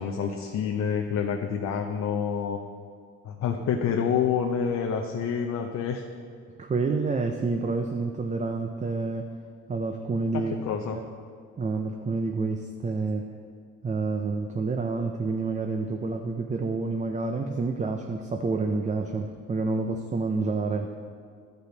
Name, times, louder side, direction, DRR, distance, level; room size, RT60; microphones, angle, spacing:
voice 1, 0.0-2.6 3.2-6.0 10.7-11.0, left 7 dB, 65° left, 3 dB, 0.7 m, -27 dB
voice 2, 6.6-9.3 9.7-10.5 10.9-11.1 11.6-13.3 13.8-20.9, right 3 dB, 25° right, 4 dB, 0.5 m, -28 dB
11.5 x 5.6 x 3.9 m, 2.1 s
cardioid pair, 90°, 30 cm